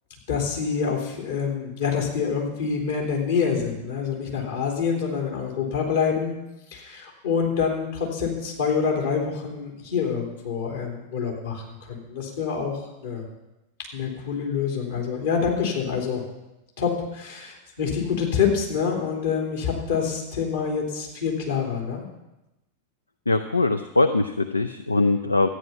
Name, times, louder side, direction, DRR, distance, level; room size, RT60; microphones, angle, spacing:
voice 1, 0.3-6.3 6.7-13.2 13.9-16.2 16.8-22.0, left 6 dB, 60° left, 0 dB, 3.3 m, -26 dB
voice 2, 23.3-25.5, left 2 dB, 80° left, 9 dB, 0.5 m, -22 dB
13.0 x 9.6 x 5.7 m, 0.96 s
figure-of-eight pair, 90°, 0 cm